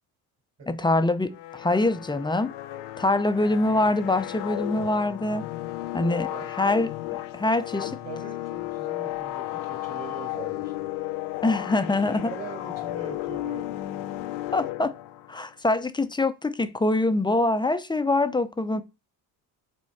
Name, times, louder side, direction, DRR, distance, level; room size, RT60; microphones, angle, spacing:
voice 1, 0.7-2.5 3.0-5.4 5.9-6.9 7.3-7.9 11.4-12.3 14.5-14.9 15.3-18.8, left 2 dB, 10° left, 0.6 m, -24 dB
sound 1, 1.3-15.4, left 15 dB, 70° left, 0.7 m, -34 dB
voice 2, 8.0-10.9 11.9-14.0, right 4 dB, 30° right, 2.5 m, -42 dB
6.6 x 4.3 x 3.6 m
supercardioid pair, 80°, 42 cm